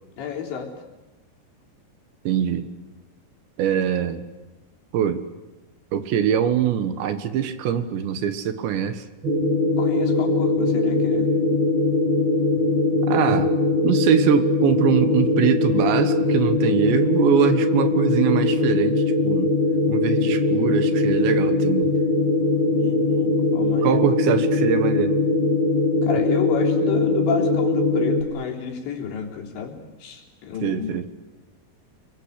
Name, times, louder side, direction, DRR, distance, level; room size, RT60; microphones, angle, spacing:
voice 1, 0.2-0.7 9.8-11.3 22.8-24.0 26.0-31.0, left 8 dB, 70° left, 1 dB, 5.8 m, -30 dB
voice 2, 2.3-2.7 3.6-4.2 4.9-5.2 5.9-9.1 13.1-13.5 13.8-19.5 19.9-22.0 23.8-25.2 30.6-31.1, right 9 dB, 75° right, 10 dB, 3.6 m, -23 dB
sound 1, 9.2-28.2, left 2 dB, 35° right, 2.5 m, -21 dB
29.5 x 23.0 x 8.3 m, 1.1 s
omnidirectional pair, 5.4 m